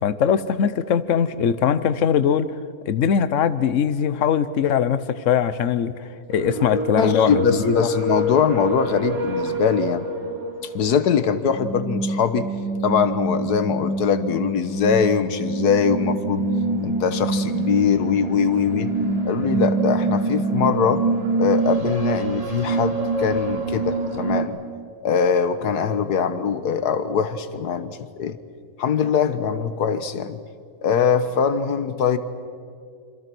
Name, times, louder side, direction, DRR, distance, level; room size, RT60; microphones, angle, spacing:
voice 1, 0.0-2.5 2.9-7.8, left 8 dB, 55° left, 14 dB, 1.1 m, -21 dB
sound 1, 6.3-24.4, right 2 dB, 75° right, 4.2 m, -25 dB
voice 2, 6.9-10.1 10.6-12.5 12.8-16.5 16.8-18.9 19.2-21.0 21.4-24.6 25.0-28.4 28.8-30.4 30.8-32.2, left 7 dB, 75° left, 12 dB, 1.6 m, -22 dB
26.5 x 26.0 x 6.1 m, 2.3 s
omnidirectional pair, 1.7 m